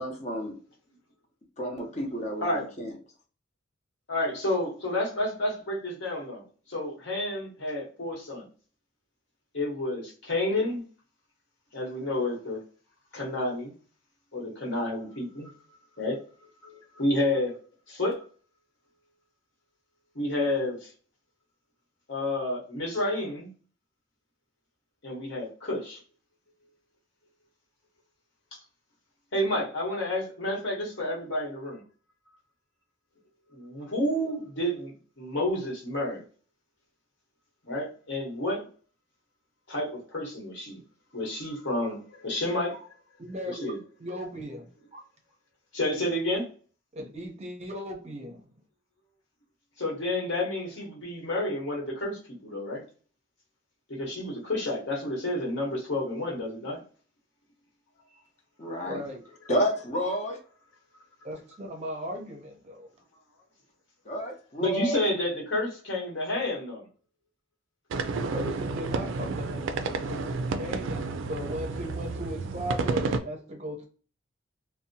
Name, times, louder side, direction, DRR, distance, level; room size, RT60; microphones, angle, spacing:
voice 1, 0.0-0.5 1.6-2.9 58.6-59.0 59.5-60.4 64.1-65.0, equal, 35° left, 1 dB, 0.7 m, -30 dB
voice 2, 4.1-8.5 9.5-10.8 11.7-12.6 13.1-13.7 14.3-15.5 16.0-16.2 16.6-17.5 17.9-18.2 20.1-20.9 22.1-23.5 25.0-26.0 28.5-28.6 29.3-31.8 33.5-36.2 37.6-38.6 39.7-40.8 41.1-42.8 43.5-43.8 45.7-46.5 49.8-52.8 53.9-56.8 58.7-58.8 64.6-66.9, left 1 dB, 65° left, -3 dB, 1.1 m, -30 dB
voice 3, 43.2-43.7 44.0-45.0 46.9-48.4 58.8-59.2 61.2-62.9 68.1-73.9, equal, 35° right, 2 dB, 0.6 m, -37 dB
sound 1, 67.9-73.2, right 3 dB, 75° right, 0.3 m, -31 dB
2.7 x 2.1 x 2.6 m, 0.41 s
head